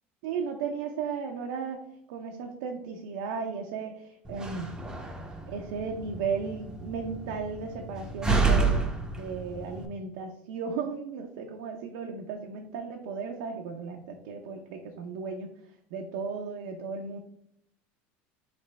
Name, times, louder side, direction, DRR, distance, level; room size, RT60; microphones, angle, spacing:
voice 1, 0.2-1.8 2.1-4.7 5.5-8.9 9.2-15.5 15.9-17.2, right 5 dB, 85° right, 2 dB, 0.6 m, -35 dB
Slam, 4.2-9.9, right 3 dB, 10° right, 0.7 m, -30 dB
5.1 x 3.2 x 3.2 m, 0.71 s
supercardioid pair, 120°, 6 cm